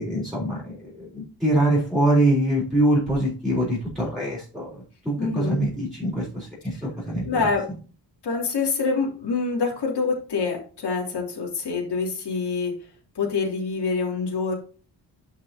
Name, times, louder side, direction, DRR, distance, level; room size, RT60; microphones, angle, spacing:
voice 1, 0.0-7.5, right 1 dB, ahead, -4 dB, 3.8 m, -24 dB
voice 2, 5.2-5.6 7.2-7.6 8.2-12.7 13.1-14.5, left 4 dB, 65° left, -2 dB, 3.1 m, -26 dB
11.5 x 5.5 x 2.9 m, 0.38 s
wide cardioid pair, 180°, 42 cm